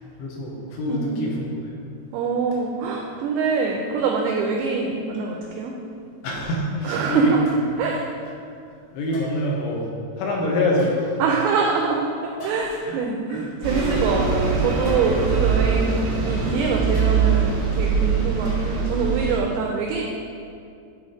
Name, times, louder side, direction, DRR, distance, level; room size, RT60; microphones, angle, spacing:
voice 1, 0.0-1.5 6.2-7.4 8.9-9.9 10.2-11.1 12.8-13.0 13.3-13.5 13.8-14.1, left 1 dB, 90° left, -2 dB, 3.6 m, -25 dB
voice 2, 0.9-1.2 2.1-5.7 6.8-7.4 7.8-8.1 11.2-20.0, right 4 dB, 90° right, 0 dB, 2.2 m, -24 dB
sound 1, 2.5-2.6 3.1-3.4 4.1-4.2 5.1-5.2 6.2-6.3 7.5-7.8 9.1-9.6 10.7-11.6 12.4-12.9 13.3-13.4 13.8-13.9 14.8-15.7 17.0-17.6 18.4-19.0 19.4-19.5, left 2 dB, 60° left, 2.4 m, -43 dB
Bus, 13.6-19.4, right 5 dB, 65° right, 1.0 m, -22 dB
11.0 x 4.1 x 5.0 m, 2.4 s
omnidirectional pair, 5.3 m